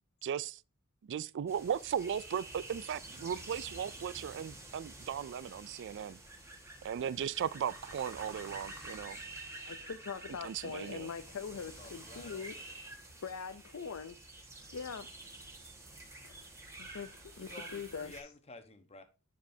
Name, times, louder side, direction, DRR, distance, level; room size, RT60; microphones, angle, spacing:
voice 1, 0.2-0.6 1.0-6.2 6.8-9.2 10.4-11.1, right 8 dB, 55° right, 0.3 m, -37 dB
sound 1, 1.5-18.2, right 2 dB, 15° right, 1.6 m, -49 dB
voice 2, 9.7-12.5 13.2-14.2 14.7-15.1 16.2-16.5 16.8-18.2, left 6 dB, 65° left, 0.5 m, -42 dB
voice 3, 11.5-12.8 17.3-19.0, left 2 dB, 30° left, 1.1 m, -53 dB
10.5 x 5.1 x 2.7 m
head